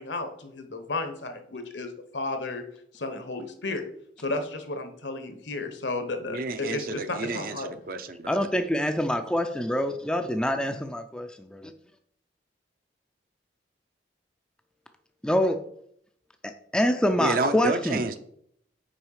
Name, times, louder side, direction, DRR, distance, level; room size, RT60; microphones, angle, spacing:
voice 1, 0.0-2.6 2.9-3.8 4.2-7.7, left 2 dB, 75° left, 7 dB, 1.1 m, -33 dB
voice 2, 6.3-8.5 17.2-18.2, right 3 dB, 50° right, 9 dB, 0.6 m, -30 dB
voice 3, 8.3-11.7 15.2-15.6 16.7-18.0, equal, 5° left, 6 dB, 0.4 m, -25 dB
6.2 x 4.6 x 4.8 m, 0.68 s
head